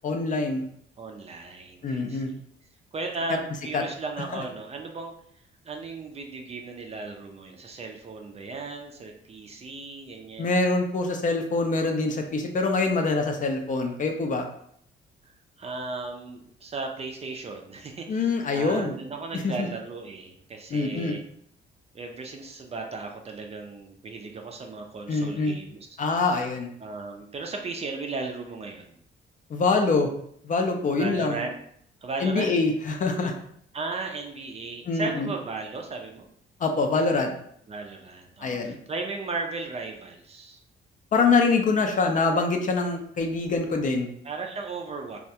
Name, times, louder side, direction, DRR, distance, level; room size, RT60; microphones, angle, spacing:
voice 1, 0.0-0.6 1.8-2.3 3.7-3.8 4.3-4.4 10.4-14.5 18.1-18.9 19.4-19.7 20.7-21.2 25.1-25.6 26.0-26.7 29.5-30.1 30.4-31.4 32.2-33.3 34.9-35.3 36.6-37.3 38.4-38.8 41.1-44.1, left 3 dB, 40° left, 4 dB, 0.4 m, -24 dB
voice 2, 1.0-2.4 2.9-5.1 5.6-10.6 15.6-21.2 21.9-25.9 26.1-26.3 26.8-28.9 31.0-31.5 32.0-32.6 33.7-36.3 37.7-40.6 44.2-45.2, right 3 dB, 30° right, 3 dB, 0.4 m, -36 dB
2.3 x 2.2 x 2.7 m, 0.67 s
cardioid pair, 90°, 20 cm